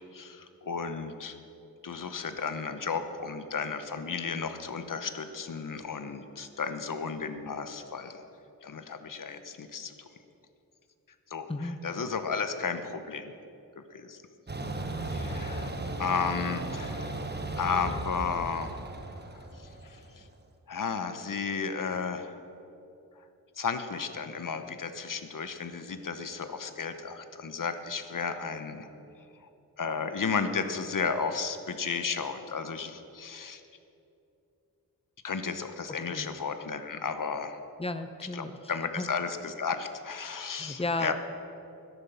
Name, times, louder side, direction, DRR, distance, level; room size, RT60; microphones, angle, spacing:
voice 1, 0.1-1.4 1.8-8.2 8.6-9.9 11.3-13.3 13.7-14.2 15.1-15.7 16.0-17.1 17.6-18.8 19.3-20.2 20.7-22.4 23.6-28.9 29.8-33.6 35.2-37.6 38.3-41.1, left 5 dB, 60° left, 9 dB, 1.0 m, -33 dB
sound 1, 14.5-20.2, right 2 dB, 30° right, 1.2 m, -36 dB
voice 2, 37.8-38.5 39.0-39.1 40.5-41.1, left 2 dB, 15° left, 9 dB, 0.7 m, -33 dB
12.5 x 10.5 x 7.1 m, 2.8 s
wide cardioid pair, 115°, 36 cm